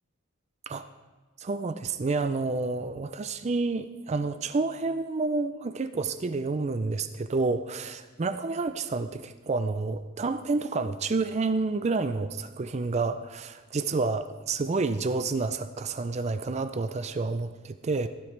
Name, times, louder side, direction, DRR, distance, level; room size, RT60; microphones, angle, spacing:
voice 1, 1.4-18.1, right 3 dB, 30° right, 11 dB, 0.4 m, -29 dB
16.0 x 11.5 x 3.3 m, 1.3 s
head